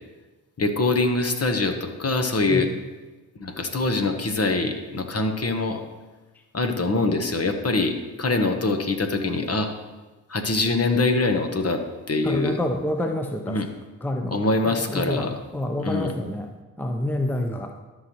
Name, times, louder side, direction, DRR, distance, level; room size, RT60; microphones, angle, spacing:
voice 1, 0.6-2.7 3.4-5.8 6.5-9.7 10.3-11.8 12.1-12.6 13.5-13.7 14.3-15.4 15.8-16.1, left 3 dB, 35° left, 6 dB, 1.2 m, -24 dB
voice 2, 12.2-13.6 14.0-16.5 16.8-17.7, left 1 dB, 5° left, 4 dB, 0.8 m, -28 dB
13.0 x 5.7 x 3.1 m, 1.2 s
hypercardioid pair, 45°, 44 cm